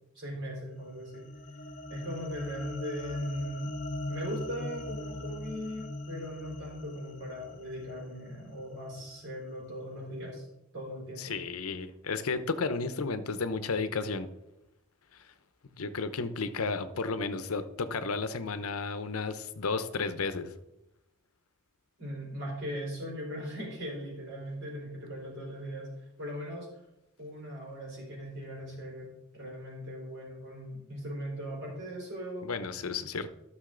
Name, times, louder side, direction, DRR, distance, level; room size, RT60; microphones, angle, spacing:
voice 1, 0.1-1.2 1.9-3.7 4.1-10.5 10.7-11.3 22.0-26.7 27.2-32.5, equal, 60° right, -3 dB, 4.1 m, -39 dB
sound 1, 0.9-9.3, left 1 dB, 35° left, 0.8 m, -40 dB
voice 2, 11.2-14.3 15.8-20.5 32.4-33.3, left 4 dB, 80° left, 11 dB, 0.7 m, -33 dB
13.0 x 6.3 x 3.8 m, 0.91 s
head